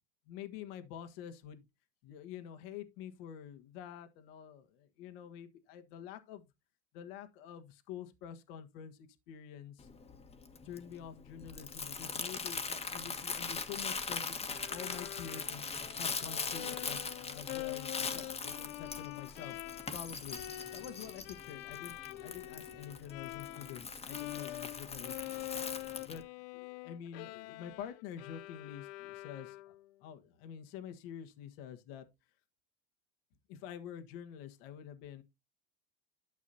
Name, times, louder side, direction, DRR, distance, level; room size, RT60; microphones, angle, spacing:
voice 1, 0.3-1.6 2.0-6.5 6.9-9.9 10.6-15.7 16.0-19.6 19.9-25.4 26.0-26.2 26.5-29.7 30.0-32.0 33.5-35.2, left 9 dB, 65° left, 1.6 m, -47 dB
Crumpling crinkling, 9.8-26.2, left 5 dB, 20° left, 1.4 m, -41 dB
Bowed string instrument, 14.5-23.8 24.1-29.9, left 20 dB, 50° left, 0.5 m, -45 dB
12.0 x 6.4 x 2.7 m
hypercardioid pair, 105°, 32 cm